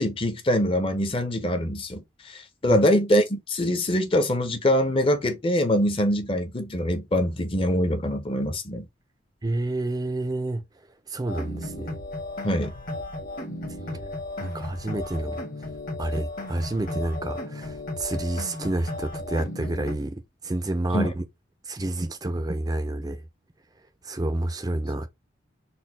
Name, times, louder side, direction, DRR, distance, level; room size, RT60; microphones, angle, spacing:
voice 1, 0.0-8.9 12.4-12.7 20.9-21.1, equal, 30° left, 0.6 m, -24 dB
voice 2, 9.4-10.6 11.1-11.9 13.8-14.1 14.4-15.4 16.0-21.2 21.7-23.2 24.0-25.1, right 2 dB, 20° right, 0.4 m, -29 dB
sound 1, 11.3-19.9, left 2 dB, 45° left, 1.2 m, -35 dB
4.2 x 2.2 x 4.0 m
head